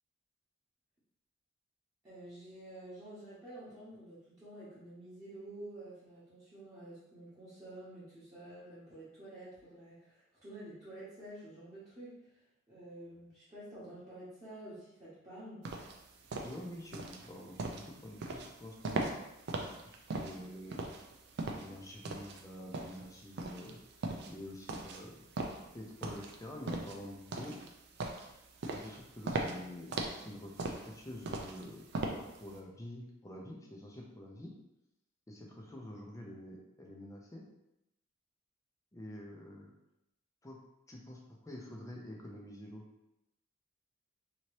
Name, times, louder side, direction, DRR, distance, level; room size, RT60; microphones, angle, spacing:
voice 1, 2.0-12.4 12.7-15.7, right 1 dB, 20° right, -13 dB, 0.9 m, -50 dB
sound 1, 15.6-32.5, right 2 dB, 55° right, 0.4 m, -40 dB
voice 2, 16.4-19.1 19.6-20.8 21.5-23.8 24.3-25.2 25.7-27.6 28.7-31.8 32.1-34.5 35.3-37.4 38.9-39.7 40.4-40.6 40.9-42.9, left 1 dB, 15° left, -1 dB, 0.4 m, -47 dB
2.8 x 2.7 x 3.1 m, 0.89 s
head